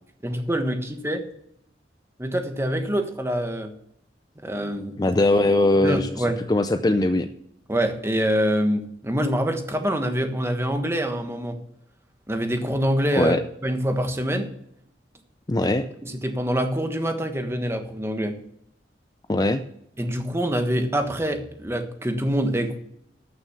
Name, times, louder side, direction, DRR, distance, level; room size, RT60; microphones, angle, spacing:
voice 1, 0.2-1.2 2.2-3.7 4.4-5.1 5.8-6.4 7.7-11.6 12.3-13.4 13.6-14.5 15.6-15.7 16.0-18.4 20.0-22.8, equal, 15° right, 6 dB, 1.3 m, -25 dB
voice 2, 5.0-6.2 6.5-7.3 13.1-13.4 15.5-15.9 19.3-19.6, left 2 dB, 20° left, 9 dB, 0.5 m, -20 dB
13.0 x 6.4 x 7.1 m, 0.72 s
head